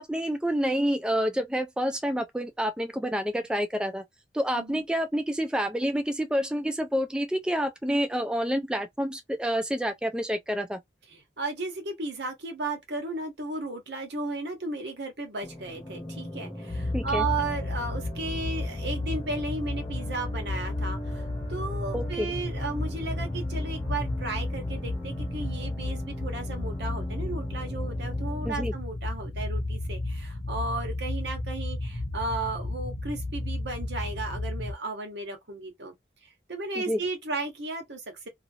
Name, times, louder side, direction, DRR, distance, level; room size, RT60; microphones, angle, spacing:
voice 1, 0.0-4.0 4.3-10.8 16.9-17.2 21.9-22.3 28.5-28.7 36.8-37.0, equal, 5° right, 0.3 m, -28 dB
voice 2, 11.1-35.9 36.2-38.3, right 3 dB, 80° right, 1.2 m, -34 dB
sound 1, 15.4-28.5, equal, 20° left, 0.9 m, -41 dB
sound 2, 16.7-34.7, left 2 dB, 40° left, 0.6 m, -33 dB
2.8 x 2.6 x 2.6 m
head